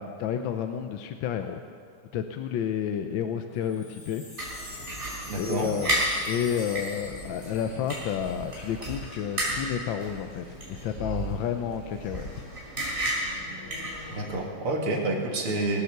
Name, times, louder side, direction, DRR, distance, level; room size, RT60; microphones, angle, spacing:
voice 1, 0.0-1.6 2.1-4.2 5.4-5.9 6.3-12.5, left 8 dB, 70° left, 7 dB, 1.3 m, -31 dB
Wind chime, 3.6-8.8 9.0-9.1 9.3-9.8, left 2 dB, 35° left, 2.4 m, -45 dB
sound 1, 4.4-14.4, right 1 dB, 25° right, 4.2 m, -33 dB
voice 2, 5.3-5.7 14.1-15.8, right 2 dB, 80° right, 0 dB, 3.0 m, -28 dB
21.0 x 9.3 x 6.6 m, 2.3 s
omnidirectional pair, 2.4 m